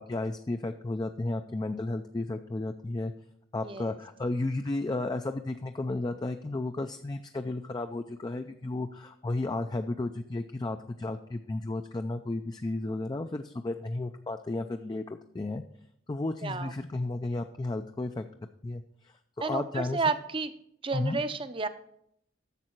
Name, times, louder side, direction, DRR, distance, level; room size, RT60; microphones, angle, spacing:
voice 1, 0.0-3.1 3.5-15.6 16.1-18.2 18.6-20.0 20.9-21.2, left 2 dB, 20° left, 7 dB, 0.3 m, -33 dB
voice 2, 3.6-4.0 16.4-16.7 19.4-20.5 20.8-21.7, right 4 dB, 25° right, 11 dB, 0.6 m, -31 dB
10.5 x 7.2 x 4.4 m, 0.72 s
head